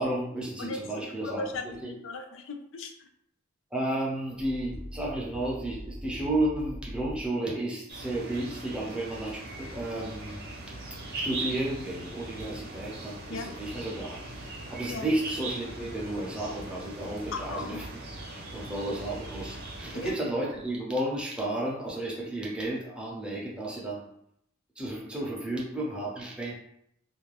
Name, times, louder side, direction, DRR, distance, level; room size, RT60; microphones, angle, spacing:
voice 1, 0.0-1.5 1.8-1.9 3.7-10.4 11.2-14.2 14.7-17.9 18.3-24.1 24.8-26.5, right 1 dB, 5° right, -5 dB, 0.7 m, -32 dB
voice 2, 0.6-2.9 13.3-13.5 14.9-15.1 17.3-17.8 19.9-20.2, left 3 dB, 65° left, 5 dB, 0.4 m, -37 dB
sound 1, 4.4-7.3, equal, 85° left, 1.3 m, -42 dB
sound 2, 7.9-20.1, right 2 dB, 50° right, 0.7 m, -40 dB
2.5 x 2.2 x 3.2 m, 0.74 s
head